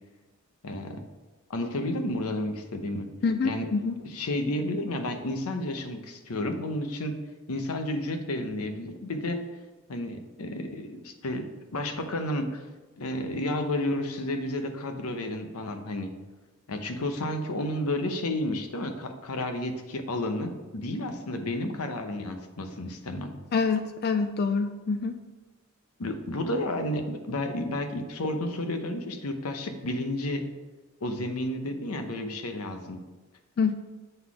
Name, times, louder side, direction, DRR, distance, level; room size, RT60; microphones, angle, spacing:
voice 1, 0.6-1.0 1.5-3.1 3.4-3.7 4.0-7.2 7.5-9.4 9.9-12.6 13.0-16.1 16.7-23.3 26.0-30.4 31.0-33.0, left 1 dB, 85° left, 6 dB, 0.8 m, -31 dB
voice 2, 3.2-4.0 23.5-25.2 33.6-33.7, left 5 dB, 45° left, 8 dB, 0.3 m, -26 dB
7.7 x 4.0 x 4.8 m, 1.2 s
head